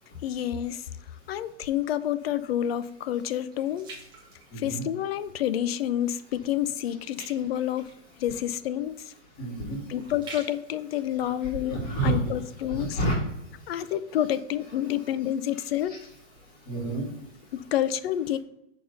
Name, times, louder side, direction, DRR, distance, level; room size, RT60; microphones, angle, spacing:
voice 1, 0.2-0.8 1.3-3.9 4.6-7.9 8.2-9.1 9.9-13.0 13.7-16.0 17.5-18.4, left 11 dB, 55° left, 15 dB, 0.5 m, -29 dB
sound 1, 2.2-5.2 5.7-6.0 6.3-12.3 12.8-12.9, right 3 dB, 10° right, 1.1 m, -49 dB
voice 2, 4.5-4.8 9.3-9.9 11.2-12.2 12.7-13.2 13.4-13.9 15.5-16.0 16.4-17.5, right 2 dB, 25° left, -3 dB, 2.4 m, -31 dB
6.5 x 4.2 x 5.3 m, 0.83 s
supercardioid pair, 165°, 37 cm